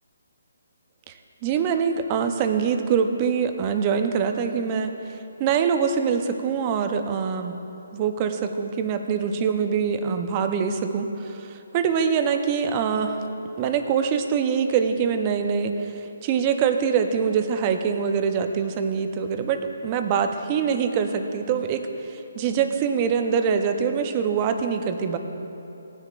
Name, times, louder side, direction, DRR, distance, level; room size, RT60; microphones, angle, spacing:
voice 1, 1.4-7.6 7.9-13.2 13.6-25.2, right 6 dB, 30° right, 7 dB, 0.7 m, -24 dB
18.0 x 9.8 x 2.5 m, 3.0 s
figure-of-eight pair, 145°, 0 cm